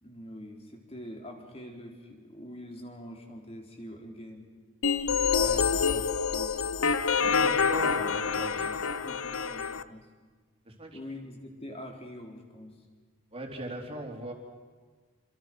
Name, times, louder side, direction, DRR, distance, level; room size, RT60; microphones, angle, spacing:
voice 1, 0.0-4.5 6.3-7.0 8.6-8.7 9.0-10.1 10.9-12.7, left 1 dB, 25° left, 2 dB, 4.1 m, -45 dB
sound 1, 4.8-9.8, left 6 dB, 70° left, 0.9 m, -27 dB
voice 2, 5.4-6.0 7.1-8.8 10.7-11.0 13.3-14.3, right 1 dB, 25° right, 2 dB, 3.6 m, -40 dB
28.5 x 26.0 x 6.3 m, 1.5 s
head